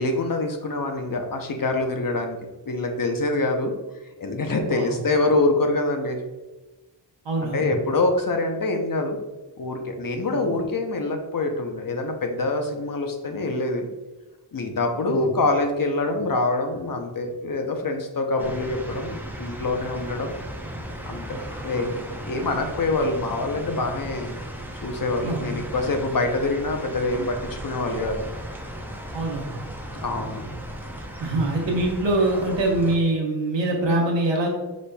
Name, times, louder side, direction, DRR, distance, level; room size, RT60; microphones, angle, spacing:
voice 1, 0.0-2.4 2.7-3.7 4.2-6.2 7.4-9.2 9.6-13.9 14.5-20.4 21.0-21.4 21.6-24.4 24.8-28.2 30.0-30.4, left 2 dB, 50° left, 4 dB, 0.7 m, -25 dB
voice 2, 7.2-7.7 10.3-10.4 15.1-15.2 21.3-21.4 25.2-25.5 29.1-29.6 30.2-30.6 31.2-34.5, right 2 dB, 85° right, 0 dB, 1.0 m, -24 dB
sound 1, 18.4-33.0, right 1 dB, 5° right, 0.5 m, -36 dB
5.1 x 4.1 x 2.2 m, 1.1 s
wide cardioid pair, 90°, 43 cm